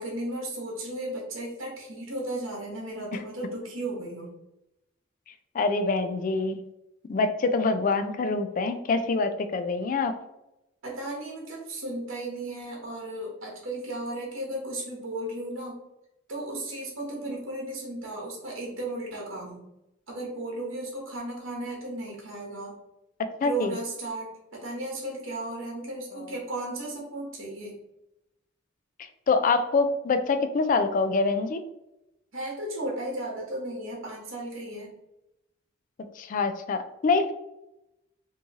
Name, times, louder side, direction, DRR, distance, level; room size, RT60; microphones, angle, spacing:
voice 1, 0.0-4.3 10.8-15.8 16.3-19.6 20.1-22.8 23.4-27.8 32.3-34.9, right 1 dB, 80° right, -2 dB, 1.0 m, -35 dB
voice 2, 5.5-6.6 7.1-10.1 23.4-23.7 26.1-26.2 29.3-31.6 36.2-37.3, left 3 dB, 40° left, 9 dB, 0.3 m, -25 dB
3.0 x 2.7 x 3.5 m, 0.91 s
head